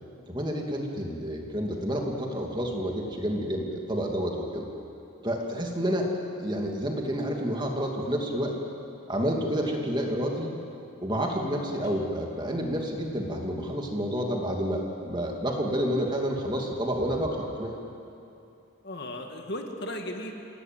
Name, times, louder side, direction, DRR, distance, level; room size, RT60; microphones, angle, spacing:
voice 1, 0.3-4.7 5.2-6.1 6.4-8.6 9.1-10.5 11.0-17.7, equal, 20° right, 0 dB, 2.7 m, -29 dB
voice 2, 5.4-5.7 11.8-12.1 18.8-20.3, left 1 dB, 50° left, 3 dB, 2.1 m, -37 dB
28.5 x 17.5 x 9.2 m, 2.7 s
head